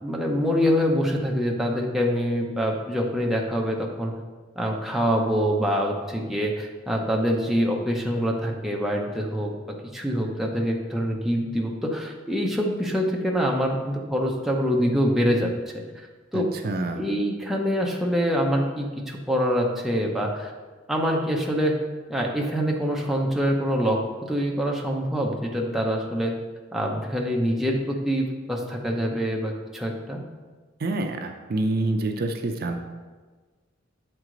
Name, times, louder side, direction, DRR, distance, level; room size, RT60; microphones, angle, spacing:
voice 1, 0.0-4.1 4.6-9.5 9.9-16.1 16.3-16.5 16.9-20.5 20.9-21.8 22.1-26.3 26.7-30.2, equal, ahead, -1 dB, 0.6 m, -25 dB
voice 2, 16.3-17.1 30.8-32.8, right 2 dB, 50° right, 5 dB, 0.5 m, -27 dB
7.3 x 4.7 x 3.8 m, 1.4 s
head